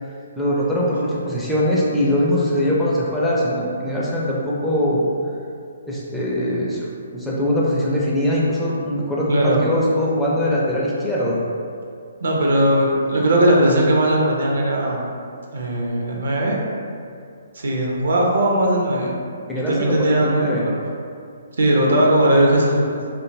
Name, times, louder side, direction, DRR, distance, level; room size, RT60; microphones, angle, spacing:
voice 1, 0.4-5.0 5.9-11.4 19.5-20.7, left 1 dB, 5° left, -7 dB, 0.4 m, -21 dB
voice 2, 9.3-9.7 12.2-15.1 15.5-16.6 17.5-19.2 19.6-20.7 21.6-23.0, right 1 dB, 65° right, -2 dB, 0.5 m, -18 dB
2.6 x 2.2 x 2.6 m, 2.4 s
figure-of-eight pair, 130°, 0 cm